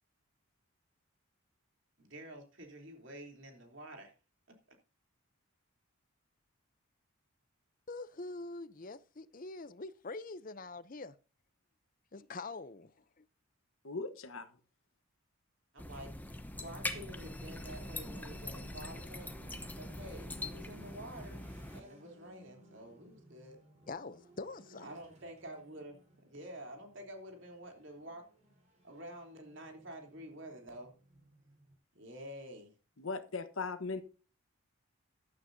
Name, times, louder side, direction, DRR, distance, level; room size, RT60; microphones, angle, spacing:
voice 1, 2.0-4.1 15.7-16.1 16.6-19.3 19.8-21.5 21.7-23.6 24.8-28.2 28.8-30.9 31.9-32.7, right 1 dB, 55° right, 3.3 m, -49 dB
voice 2, 7.9-11.2 12.1-13.3 23.9-24.9, left 3 dB, 40° left, 0.6 m, -44 dB
voice 3, 13.8-14.6 33.0-34.0, left 4 dB, 70° left, 1.2 m, -39 dB
sound 1, 15.8-21.8, left 1 dB, 10° left, 0.9 m, -43 dB
sound 2, 16.5-31.8, right 1 dB, 30° right, 4.1 m, -62 dB
15.0 x 12.0 x 2.7 m
head